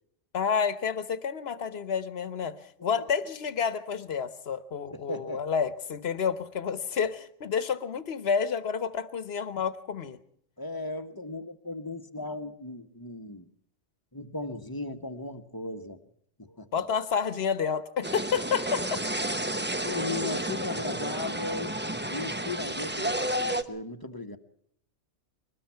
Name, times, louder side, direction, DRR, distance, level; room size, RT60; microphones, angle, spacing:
voice 1, 0.3-2.5 2.8-10.2 16.7-19.0 20.6-20.7, left 6 dB, 60° left, 13 dB, 1.4 m, -29 dB
voice 2, 4.9-5.4 10.6-13.5 14.1-16.0 16.4-16.8 19.8-21.8 22.1-24.4, left 2 dB, 20° left, 8 dB, 1.3 m, -37 dB
sound 1, 18.0-23.6, right 1 dB, 10° right, 0.8 m, -31 dB
23.0 x 19.5 x 5.8 m, 0.66 s
omnidirectional pair, 1.2 m